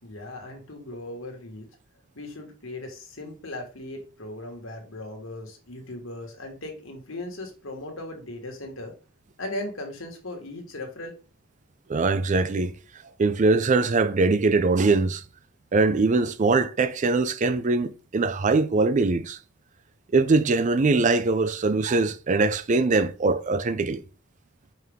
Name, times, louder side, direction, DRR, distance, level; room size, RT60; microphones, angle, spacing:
voice 1, 0.0-1.7 2.2-8.9 9.4-11.1, left 1 dB, 75° left, 1.9 m, -38 dB
voice 2, 11.9-12.7 13.2-15.2 15.7-19.4 20.1-24.0, right 3 dB, 35° right, 0.4 m, -22 dB
5.7 x 4.6 x 3.6 m
head